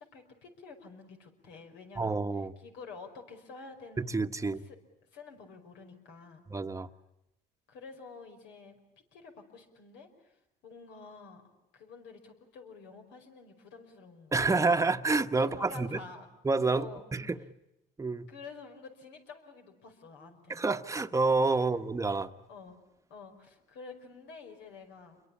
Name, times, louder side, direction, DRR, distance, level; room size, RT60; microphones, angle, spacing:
voice 1, 0.0-2.2 2.6-4.8 5.1-6.4 7.7-8.8 9.1-11.4 11.7-14.8 15.4-16.3 16.7-17.0 18.3-20.6 21.5-21.7 22.5-22.8 23.1-25.2, left 4 dB, 80° left, 5.4 m, -49 dB
voice 2, 2.0-2.5 4.1-4.6 6.5-6.9 14.3-16.0 16.4-16.9 17.1-17.4 18.0-18.2 20.5-22.3, right 3 dB, 15° right, 1.2 m, -28 dB
28.0 x 23.0 x 8.6 m
cardioid pair, 95°, 19 cm